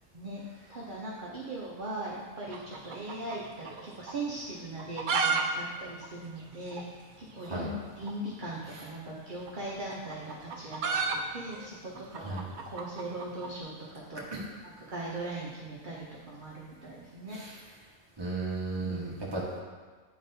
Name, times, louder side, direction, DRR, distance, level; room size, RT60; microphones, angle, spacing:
voice 1, 0.7-17.6 18.8-19.1, right 2 dB, 45° right, -5 dB, 0.7 m, -40 dB
sound 1, 2.5-3.8 4.1-4.2 4.7-5.4 5.7-5.8 6.0-6.1 6.7-6.8 8.0-8.2 9.3-13.5, right 5 dB, 85° right, 0.4 m, -32 dB
voice 2, 7.4-7.7 12.1-12.4 14.3-14.4 17.3-17.6 18.2-19.6, right 2 dB, 20° right, -5 dB, 1.0 m, -35 dB
9.3 x 3.9 x 2.7 m, 1.5 s
omnidirectional pair, 1.4 m